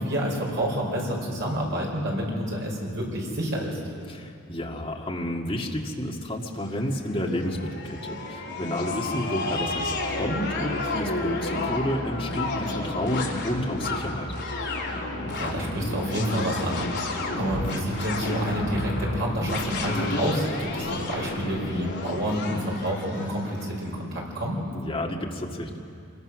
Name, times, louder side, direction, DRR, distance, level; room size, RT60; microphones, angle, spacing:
voice 1, 0.0-3.8 15.3-16.8 17.4-24.6, equal, 55° right, -2 dB, 5.2 m, -28 dB
voice 2, 4.1-14.3 24.7-25.8, left 1 dB, 25° left, 0 dB, 1.9 m, -30 dB
sound 1, 6.6-23.7, left 2 dB, 55° left, 3.5 m, -31 dB
26.5 x 21.5 x 6.3 m, 2.4 s
head